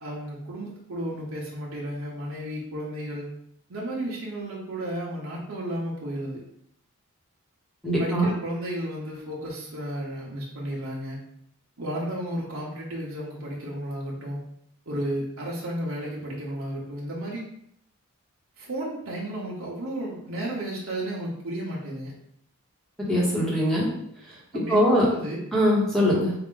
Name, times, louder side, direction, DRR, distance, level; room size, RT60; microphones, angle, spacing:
voice 1, 0.0-3.3 3.7-6.4 8.0-11.2 11.8-14.4 14.9-17.4 18.6-22.1 24.5-25.4, right 1 dB, 70° right, -5 dB, 0.9 m, -33 dB
voice 2, 7.8-8.3 23.0-23.9 24.7-25.1 25.5-26.3, equal, ahead, -6 dB, 1.2 m, -22 dB
4.8 x 2.5 x 3.8 m, 0.73 s
head